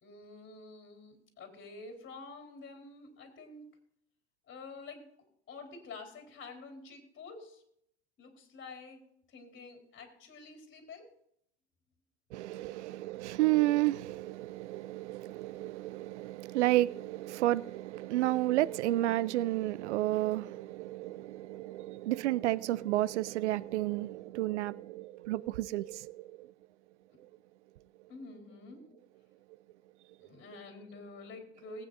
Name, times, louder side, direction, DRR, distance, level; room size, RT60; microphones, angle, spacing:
voice 1, 0.0-3.6 4.5-5.0 5.5-7.6 8.2-9.0 9.3-11.1 12.9-13.0 28.1-28.8 30.2-31.9, left 3 dB, 35° left, 3.9 m, -48 dB
voice 2, 12.3-26.3, right 16 dB, 80° right, 0.5 m, -31 dB
20.5 x 9.1 x 2.6 m
hypercardioid pair, 85°, 34 cm